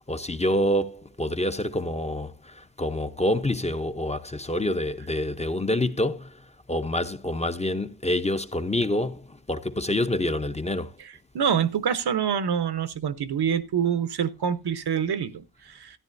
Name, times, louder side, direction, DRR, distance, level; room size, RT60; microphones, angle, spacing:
voice 1, 0.1-6.3 6.7-10.9, left 1 dB, 15° left, 0.7 m, -27 dB
voice 2, 11.0-16.0, right 8 dB, 80° right, 0.9 m, -26 dB
13.5 x 10.5 x 2.6 m
wide cardioid pair, 115°, 38 cm